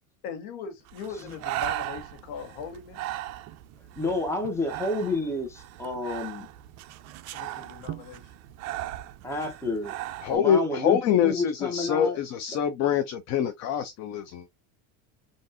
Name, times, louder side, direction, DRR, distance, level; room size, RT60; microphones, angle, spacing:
voice 1, 0.2-3.1 7.3-8.3, left 6 dB, 60° left, 1.2 m, -40 dB
Breathing, 0.9-10.4, right 14 dB, 40° right, 0.4 m, -37 dB
voice 2, 4.0-6.5 9.2-9.9 10.3-12.2, left 2 dB, 5° left, 0.9 m, -30 dB
voice 3, 10.2-14.4, left 8 dB, 40° left, 0.5 m, -25 dB
3.5 x 2.6 x 2.6 m
supercardioid pair, 130°, 42 cm